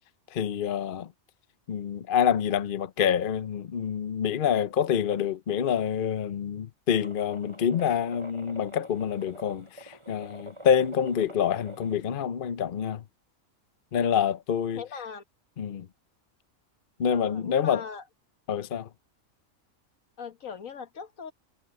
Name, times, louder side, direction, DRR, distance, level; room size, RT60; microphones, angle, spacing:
voice 1, 0.3-1.1 1.7-13.0 13.9-14.8 15.6-15.9 17.0-17.8 18.5-18.9, left 8 dB, 50° left, 0.8 m, -27 dB
sound 1, 6.9-12.0, right 1 dB, 20° right, 6.5 m, -47 dB
voice 2, 14.7-15.2 17.1-18.0 20.2-21.3, left 6 dB, 80° left, 1.8 m, -40 dB
omnidirectional pair, 1.4 m